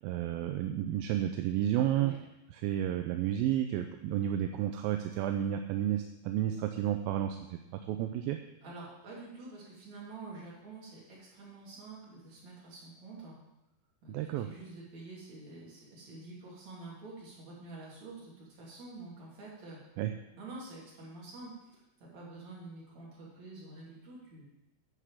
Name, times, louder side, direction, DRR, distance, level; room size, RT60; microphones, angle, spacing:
voice 1, 0.0-2.1 2.5-8.4 14.1-14.5 20.0-20.1, right 11 dB, 80° right, 6 dB, 2.3 m, -31 dB
voice 2, 8.6-13.4 14.0-19.8 20.3-24.5, right 3 dB, 50° right, -6 dB, 4.4 m, -48 dB
10.0 x 6.4 x 7.4 m, 0.92 s
omnidirectional pair, 4.4 m